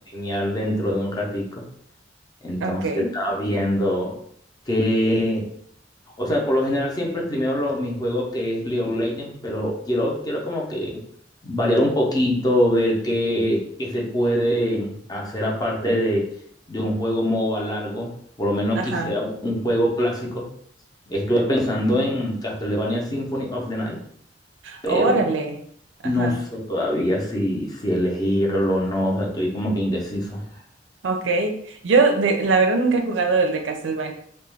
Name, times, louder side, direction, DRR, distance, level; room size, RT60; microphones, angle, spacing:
voice 1, 0.1-1.6 2.4-4.2 4.7-5.5 6.2-11.0 11.4-16.3 16.7-18.1 18.4-20.5 21.1-24.0 24.8-25.2 26.0-30.4, equal, 20° left, -1 dB, 0.5 m, -24 dB
voice 2, 2.6-3.1 18.7-19.1 24.6-25.6 26.0-26.3 31.0-34.1, right 3 dB, 85° right, 5 dB, 0.4 m, -22 dB
2.3 x 2.1 x 3.2 m, 0.64 s
head